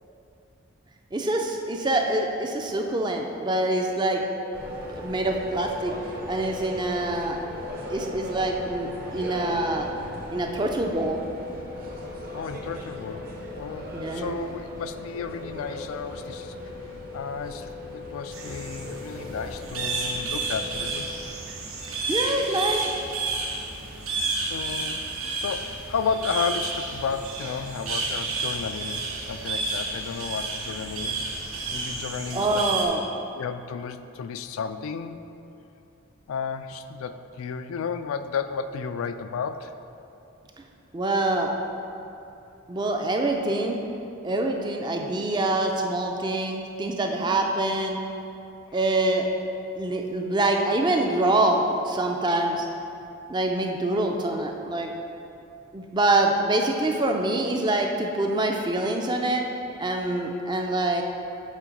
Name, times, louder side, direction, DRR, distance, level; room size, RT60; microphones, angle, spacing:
voice 1, 1.1-4.2 4.9-5.9 6.3-7.4 7.9-9.9 10.3-11.2 13.9-14.4 21.9-22.9 32.3-33.0 40.9-41.5 42.7-43.8 44.2-48.0 48.7-49.3 49.8-52.6 53.3-54.9 55.7-59.5 59.8-61.0, right 2 dB, 20° right, 3 dB, 0.4 m, -25 dB
sound 1, 4.5-21.3, left 1 dB, 45° right, 0.8 m, -37 dB
voice 2, 12.3-16.5 17.1-21.1 24.4-25.1 25.3-29.0 29.3-31.3 31.7-32.7 33.4-35.2 36.3-39.7, left 6 dB, 80° left, 10 dB, 0.3 m, -33 dB
sound 2, 18.3-32.9, right 3 dB, 80° right, 0.9 m, -31 dB
7.5 x 3.9 x 5.1 m, 2.8 s
head